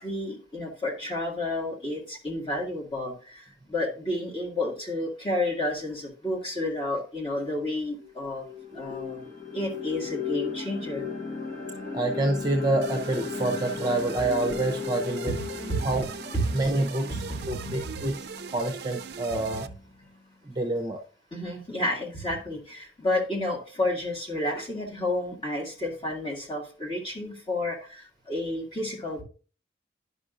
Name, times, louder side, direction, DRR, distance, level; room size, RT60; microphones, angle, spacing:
voice 1, 0.0-8.5 8.7-9.2 9.5-11.1 15.3-15.4 15.7-15.8 16.3-16.5 17.4-17.7 21.3-29.2, left 1 dB, 30° left, -2 dB, 2.0 m, -31 dB
sound 1, 7.4-7.5 8.0-20.0, left 6 dB, 50° left, 1.3 m, -36 dB
voice 2, 11.9-15.3 15.8-16.1 16.5-18.3 18.5-19.7 20.5-21.0, right 2 dB, 20° right, 3 dB, 0.7 m, -27 dB
sound 2, 12.8-19.7, right 6 dB, 60° right, 0.4 m, -40 dB
11.0 x 5.4 x 2.5 m, 0.36 s
head